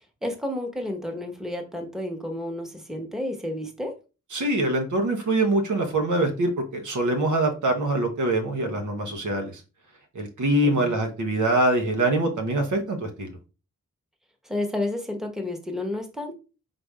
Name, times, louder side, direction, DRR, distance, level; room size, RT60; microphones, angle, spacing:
voice 1, 0.2-4.0 10.6-10.9 14.4-16.3, left 1 dB, ahead, 3 dB, 1.1 m, -31 dB
voice 2, 4.3-9.5 10.1-13.4, right 1 dB, 80° right, 4 dB, 1.0 m, -24 dB
3.9 x 2.6 x 4.7 m, 0.32 s
cardioid pair, 55°, 30 cm